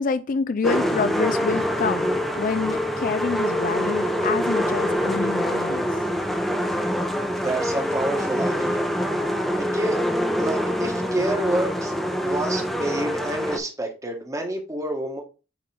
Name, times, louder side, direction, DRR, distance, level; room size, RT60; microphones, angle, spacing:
voice 1, 0.0-2.1 2.4-5.9, left 4 dB, 45° left, 0.4 m, -27 dB
sound 1, 0.6-13.6, equal, ahead, 0.8 m, -25 dB
voice 2, 7.3-8.9 9.6-10.0 10.4-11.9 12.2-15.2, right 1 dB, 15° right, 1.3 m, -28 dB
8.7 x 3.7 x 3.3 m
head